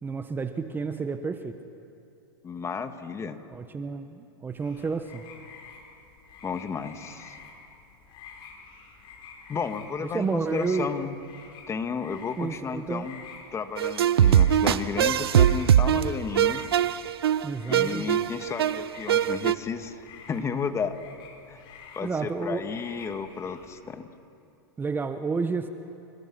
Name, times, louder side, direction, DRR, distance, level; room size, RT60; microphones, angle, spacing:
voice 1, 0.0-1.6 3.5-5.2 10.0-10.9 12.4-13.1 17.4-18.1 22.0-22.7 24.8-25.7, right 4 dB, 15° right, 9 dB, 1.1 m, -30 dB
voice 2, 2.4-3.4 6.4-7.4 9.5-11.1 11.7-13.2 13.5-16.6 17.7-21.0 21.5-21.6 21.9-24.0, left 6 dB, 20° left, 9 dB, 1.6 m, -33 dB
sound 1, 4.6-23.8, left 5 dB, 40° left, 4.9 m, -49 dB
sound 2, 13.8-19.5, right 10 dB, 80° right, 0.7 m, -21 dB
27.0 x 24.5 x 6.1 m, 2.6 s
hypercardioid pair, 105°, 13 cm